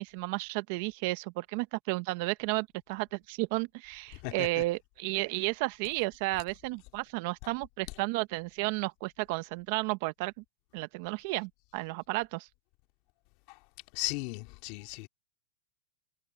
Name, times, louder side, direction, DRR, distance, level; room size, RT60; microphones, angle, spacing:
voice 1, 0.0-10.3 10.7-12.5, right 22 dB, 50° right, 0.9 m, -33 dB
voice 2, 4.2-4.6 13.5-13.6 13.9-15.1, left 24 dB, 45° left, 2.5 m, -36 dB
supercardioid pair, 150°, 0 cm